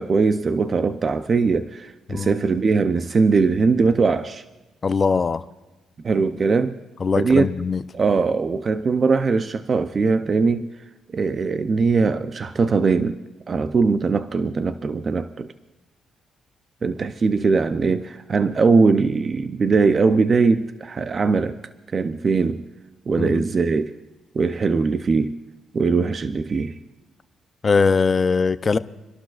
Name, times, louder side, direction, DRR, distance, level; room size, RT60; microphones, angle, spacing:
voice 1, 0.0-4.4 6.0-6.8 7.2-7.5 7.9-10.7 11.1-13.2 13.5-15.5 16.8-21.6 21.9-22.6 23.1-23.9 24.3-25.4 25.7-26.8, right 4 dB, 40° right, 0.5 m, -20 dB
voice 2, 4.8-5.4 7.0-7.8 23.2-23.4 27.6-28.8, left 5 dB, 35° left, 0.5 m, -21 dB
28.5 x 12.0 x 2.4 m
cardioid pair, 90°, 0 cm